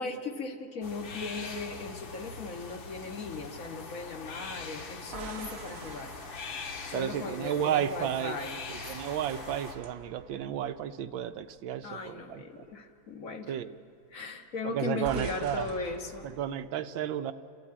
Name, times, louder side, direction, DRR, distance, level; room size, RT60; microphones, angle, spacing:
voice 1, 0.0-6.1 6.8-8.6 11.8-13.6 14.1-16.3, left 3 dB, 45° left, 4 dB, 1.6 m, -38 dB
sound 1, 0.8-9.8, left 4 dB, 75° left, 2.3 m, -42 dB
sound 2, 5.0-7.9 8.3-11.8 12.0-12.3 15.0-16.7, right 7 dB, 55° right, 0.7 m, -46 dB
voice 2, 6.9-8.4 8.7-12.6 13.5-13.8 14.6-15.7 16.2-17.3, right 10 dB, 75° right, 9 dB, 1.5 m, -32 dB
29.5 x 13.5 x 8.6 m, 2.8 s
omnidirectional pair, 2.2 m